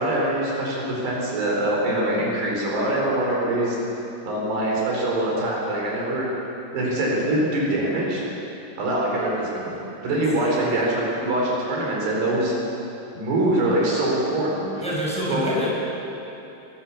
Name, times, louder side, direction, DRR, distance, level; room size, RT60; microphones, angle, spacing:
voice 1, 0.0-3.8 4.2-6.3 6.7-8.2 8.8-9.8 10.0-12.5 13.1-14.7 15.2-15.5, right 1 dB, 80° right, -3 dB, 6.4 m, -23 dB
voice 2, 10.1-10.9 14.8-15.7, equal, ahead, -6 dB, 5.9 m, -29 dB
22.0 x 17.5 x 7.2 m, 2.9 s
omnidirectional pair, 4.8 m